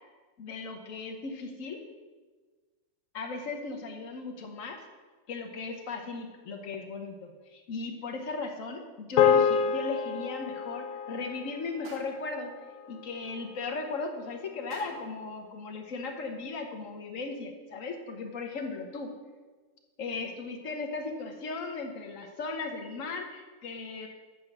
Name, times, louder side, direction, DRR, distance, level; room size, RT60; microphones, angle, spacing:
voice 1, 0.4-1.8 3.1-4.8 5.3-12.5 12.9-19.1 20.0-24.1, left 3 dB, 50° left, 4 dB, 1.2 m, -37 dB
sound 1, 9.2-13.7, left 7 dB, 80° left, 0.7 m, -28 dB
sound 2, 11.8-12.4 14.7-15.2, right 3 dB, 60° right, 1.7 m, -48 dB
8.4 x 5.6 x 5.9 m, 1.4 s
omnidirectional pair, 2.0 m